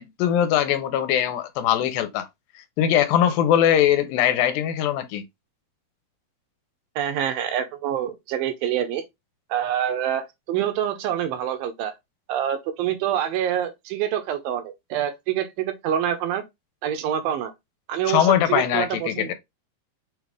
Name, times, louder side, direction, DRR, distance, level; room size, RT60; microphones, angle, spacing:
voice 1, 0.0-2.3 2.8-5.2 18.1-19.3, left 10 dB, 80° left, 2.4 m, -21 dB
voice 2, 7.0-9.0 9.5-11.9 12.3-16.4 16.8-17.5 17.9-19.3, right 10 dB, 80° right, 2.4 m, -26 dB
6.3 x 2.4 x 3.4 m
omnidirectional pair, 4.2 m